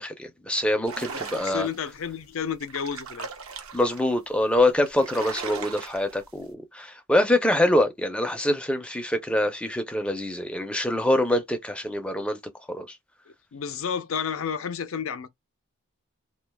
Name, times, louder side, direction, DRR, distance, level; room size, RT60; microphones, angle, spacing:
voice 1, 0.0-1.7 3.7-12.4 12.7-13.0, left 1 dB, 5° left, 0.4 m, -25 dB
sound 1, 0.8-1.9 2.5-4.0 4.5-4.6 4.9-6.2, right 5 dB, 70° right, 0.7 m, -37 dB
voice 2, 1.1-3.3 13.5-15.3, left 7 dB, 65° left, 0.4 m, -31 dB
2.3 x 2.2 x 3.3 m
head